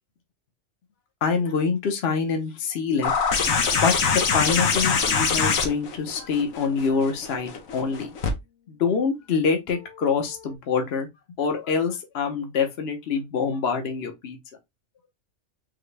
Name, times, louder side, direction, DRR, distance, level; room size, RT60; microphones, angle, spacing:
voice 1, 1.2-3.1 3.8-8.1 8.7-11.1 11.4-14.4, left 5 dB, 55° left, 1.1 m, -25 dB
sound 1, 3.0-8.3 9.7-9.8, left 5 dB, 80° left, 1.3 m, -24 dB
4.0 x 3.2 x 3.3 m
omnidirectional pair, 1.4 m